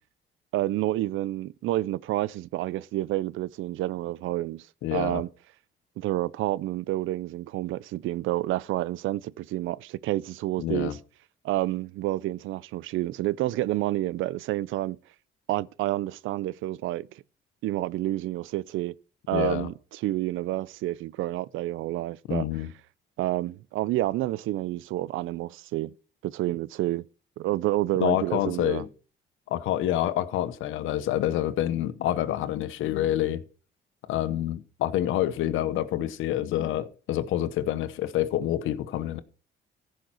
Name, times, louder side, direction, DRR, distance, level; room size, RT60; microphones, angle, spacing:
voice 1, 0.5-4.7 4.9-5.3 6.0-11.0 11.4-15.0 15.5-17.1 17.6-18.9 19.3-22.5 23.2-25.9 26.2-27.1 27.4-28.8, right 15 dB, 85° right, 0.5 m, -29 dB
voice 2, 4.8-5.2 10.6-10.9 19.3-19.7 22.3-22.7 28.0-28.9 29.5-33.4 34.1-39.2, left 12 dB, 90° left, 1.0 m, -27 dB
15.0 x 6.5 x 4.4 m
cardioid pair, 90°, 20 cm